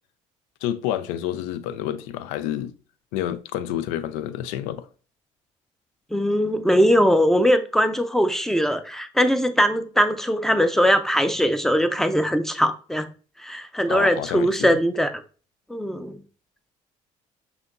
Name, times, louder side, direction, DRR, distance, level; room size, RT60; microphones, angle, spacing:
voice 1, 0.6-2.7 3.1-4.9 13.9-14.8, left 11 dB, 90° left, 0.4 m, -29 dB
voice 2, 6.1-13.1 13.4-15.1 15.7-16.2, equal, 5° left, 0.5 m, -21 dB
5.6 x 2.8 x 2.5 m
supercardioid pair, 85°, 15 cm